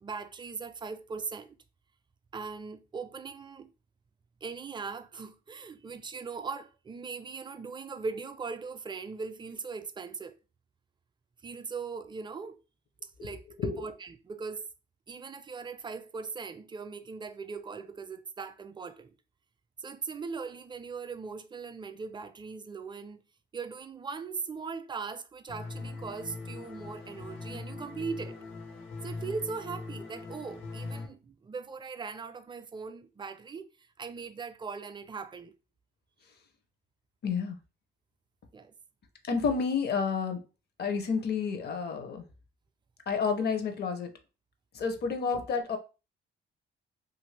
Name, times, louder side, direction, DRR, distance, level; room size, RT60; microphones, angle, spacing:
voice 1, 0.0-1.6 2.3-3.7 4.4-10.4 11.4-12.6 13.0-14.7 15.1-19.1 19.8-23.2 23.5-28.4 29.0-33.6 34.0-35.5 38.5-38.7, right 5 dB, 25° right, 0.4 m, -40 dB
voice 2, 13.3-13.9 37.2-37.6 39.2-40.4 40.8-42.2 43.1-44.1 44.7-45.8, left 5 dB, 55° left, 0.7 m, -30 dB
sound 1, 25.5-31.1, left 3 dB, 80° left, 1.0 m, -41 dB
2.7 x 2.5 x 3.2 m
cardioid pair, 90°, 20 cm